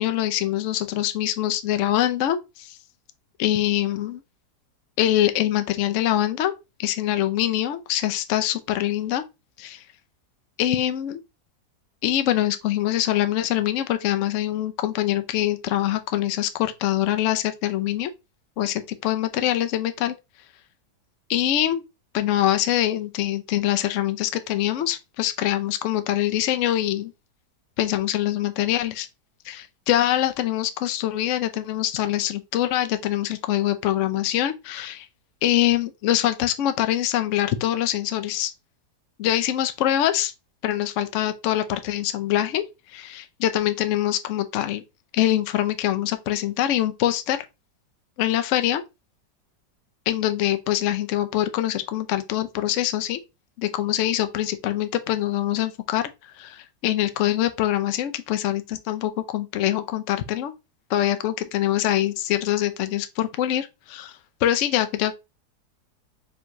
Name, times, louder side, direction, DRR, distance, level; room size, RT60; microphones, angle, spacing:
voice 1, 0.0-2.8 3.4-4.2 5.0-6.5 6.8-9.2 9.6-9.8 10.6-11.2 12.0-18.1 18.6-20.1 21.3-21.8 22.1-27.1 27.8-29.1 29.4-35.1 35.4-38.5 39.2-40.3 40.6-42.6 42.9-44.8 45.1-47.4 48.2-48.8 50.1-53.2 53.6-56.1 56.4-60.5 60.9-65.1, left 12 dB, 70° left, 0.7 m, -24 dB
4.6 x 3.4 x 2.6 m
omnidirectional pair, 1.8 m